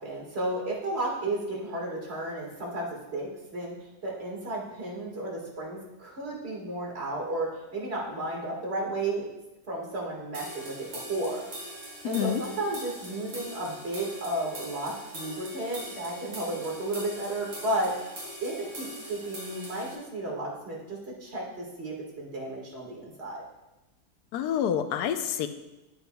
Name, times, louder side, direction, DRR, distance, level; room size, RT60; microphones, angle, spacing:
voice 1, 0.0-3.7 4.0-9.3 9.7-11.4 12.0-17.9 18.4-23.4, right 1 dB, 40° right, -3 dB, 1.9 m, -33 dB
sound 1, 10.3-19.9, right 1 dB, 60° right, 2.8 m, -42 dB
voice 2, 12.0-12.4 24.3-25.5, left 9 dB, 80° left, 9 dB, 1.2 m, -27 dB
9.2 x 8.7 x 2.3 m, 1.0 s
omnidirectional pair, 1.7 m